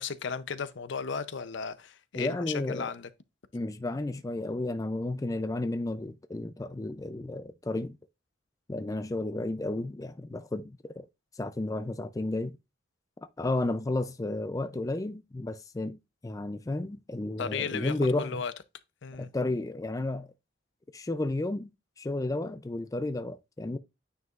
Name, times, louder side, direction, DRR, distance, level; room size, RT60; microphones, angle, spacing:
voice 1, 0.0-3.1 17.4-18.5 19.0-19.3, left 5 dB, 65° left, 0.6 m, -35 dB
voice 2, 2.1-2.9 3.5-8.0 8.7-11.1 11.4-12.5 13.4-18.4 19.2-20.3 20.9-21.7 22.0-23.8, left 2 dB, 20° left, 0.4 m, -32 dB
9.3 x 4.8 x 2.4 m
head